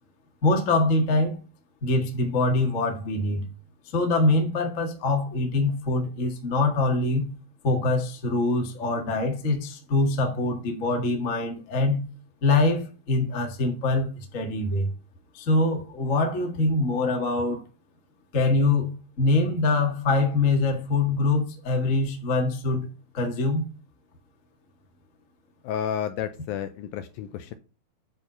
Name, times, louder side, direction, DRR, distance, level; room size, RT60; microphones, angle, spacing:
voice 1, 0.4-1.4 1.8-3.4 3.9-7.3 7.6-12.0 12.4-14.9 15.3-17.6 18.3-22.9 23.1-23.6, left 2 dB, 65° left, 0.7 m, -24 dB
voice 2, 25.6-27.5, left 9 dB, 85° left, 2.1 m, -31 dB
9.3 x 4.6 x 5.6 m
omnidirectional pair, 4.6 m